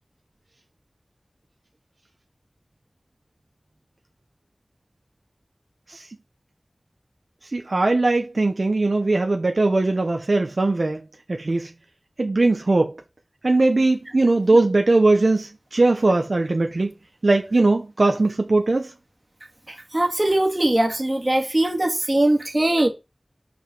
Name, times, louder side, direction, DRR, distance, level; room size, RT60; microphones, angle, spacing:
voice 1, 7.5-11.0 11.3-11.7 12.2-13.0 13.4-16.9 17.2-18.9, right 2 dB, 70° right, 0.9 m, -20 dB
voice 2, 19.9-22.9, right 1 dB, 35° right, 1.8 m, -20 dB
5.4 x 5.2 x 6.0 m
wide cardioid pair, 55°, 0 cm